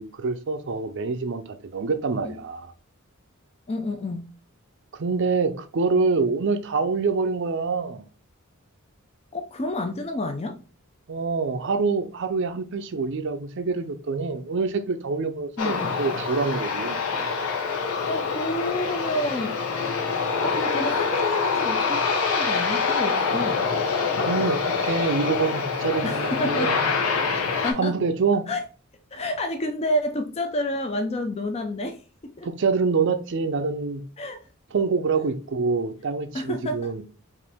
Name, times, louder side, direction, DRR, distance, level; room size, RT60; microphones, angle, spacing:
voice 1, 0.0-2.7 4.9-8.0 11.1-17.0 24.2-26.8 27.8-28.4 32.4-34.0 34.7-37.0, right 4 dB, 55° right, 0.5 m, -26 dB
voice 2, 3.7-4.3 9.3-10.6 15.6-15.9 18.1-19.6 20.4-23.7 26.0-26.7 27.5-28.0 28.5-28.6 29.1-32.0 32.2-32.5 34.2-34.4 36.3-36.9, left 1 dB, 30° left, 0.4 m, -29 dB
Aircraft, 15.6-27.7, left 5 dB, 80° left, 0.9 m, -25 dB
5.0 x 2.6 x 3.4 m
head